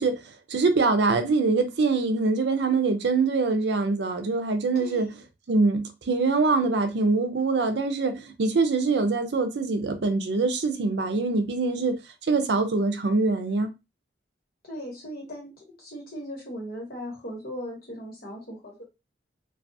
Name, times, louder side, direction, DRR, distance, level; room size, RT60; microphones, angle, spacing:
voice 1, 0.0-5.1 5.5-12.0 12.3-13.7, right 3 dB, 75° right, 0.5 m, -24 dB
voice 2, 4.7-5.1 14.6-18.8, equal, 55° left, 1.2 m, -38 dB
2.3 x 2.3 x 2.6 m
head